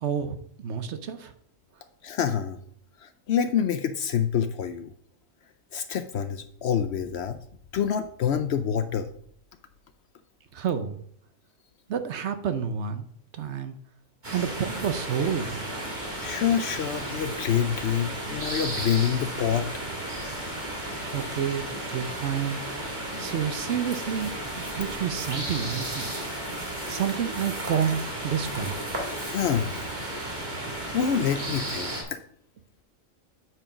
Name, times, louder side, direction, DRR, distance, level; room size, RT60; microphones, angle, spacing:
voice 1, 0.0-0.4 0.6-1.3 10.5-11.0 11.9-13.0 13.4-13.7 14.3-15.6 21.1-22.6 23.2-26.1 26.9-28.8, right 8 dB, 60° right, 10 dB, 0.9 m, -29 dB
voice 2, 2.0-2.6 3.0-4.9 5.7-7.4 7.7-9.1 16.2-19.7 29.2-29.8 30.9-32.2, left 8 dB, 65° left, 10 dB, 0.7 m, -27 dB
sound 1, 14.2-32.0, right 1 dB, 35° right, 2.0 m, -34 dB
8.9 x 4.7 x 5.0 m, 0.64 s
omnidirectional pair, 1.4 m